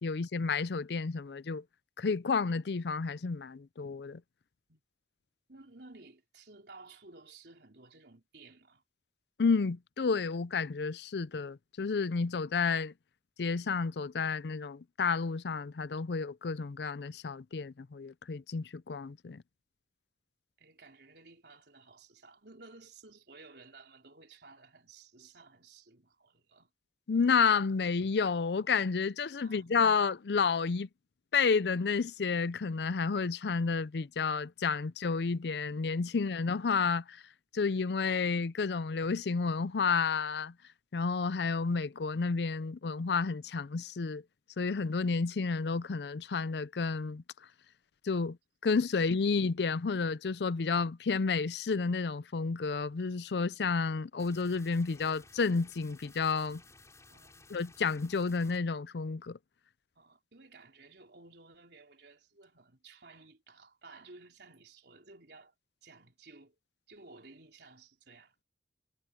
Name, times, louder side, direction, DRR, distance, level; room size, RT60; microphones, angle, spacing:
voice 1, 0.0-1.6 2.0-4.2 9.4-12.9 13.4-19.4 27.1-30.9 31.3-37.2 37.5-40.5 40.9-44.2 44.6-47.2 48.0-48.4 48.6-56.6 57.5-59.4, left 5 dB, 70° left, 0.5 m, -31 dB
voice 2, 5.5-8.8 20.6-26.7 29.4-29.8 57.1-57.4 60.0-65.5 65.8-66.6 66.9-68.4, right 3 dB, 70° right, 3.7 m, -55 dB
sound 1, 54.2-58.6, left 3 dB, 15° left, 5.6 m, -57 dB
head